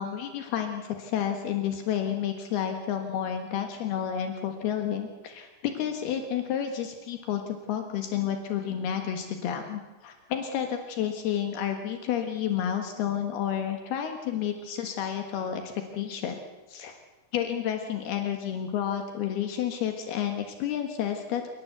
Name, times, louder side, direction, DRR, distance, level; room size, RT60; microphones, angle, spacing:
voice 1, 0.0-16.4 16.7-16.9 17.3-21.5, left 9 dB, 80° left, 5 dB, 3.5 m, -30 dB
27.5 x 19.5 x 8.1 m, 1.2 s
omnidirectional pair, 4.5 m